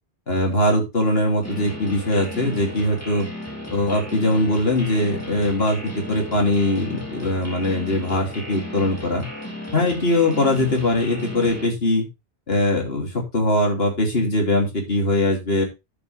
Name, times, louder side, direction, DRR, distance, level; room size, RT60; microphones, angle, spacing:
voice 1, 0.3-3.3 3.7-9.2 9.7-12.1 12.5-15.6, left 1 dB, 60° left, 1 dB, 3.3 m, -21 dB
sound 1, 1.4-11.7, left 1 dB, 15° left, 3.7 m, -35 dB
10.5 x 8.0 x 3.4 m, 0.24 s
omnidirectional pair, 1.1 m